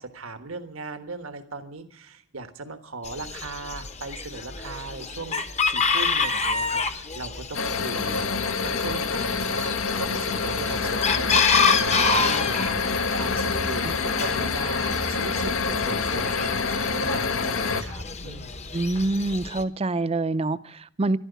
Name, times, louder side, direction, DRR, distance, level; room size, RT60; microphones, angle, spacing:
voice 1, 0.0-5.4 5.7-11.4 11.8-18.6, right 3 dB, 90° right, 1.4 m, -38 dB
Chicken rooster, 3.0-19.6, left 4 dB, 35° left, 1.0 m, -28 dB
sound 1, 7.5-17.8, left 4 dB, 75° left, 1.2 m, -27 dB
voice 2, 18.7-21.2, right 2 dB, 30° right, 0.5 m, -26 dB
14.0 x 12.0 x 8.0 m
head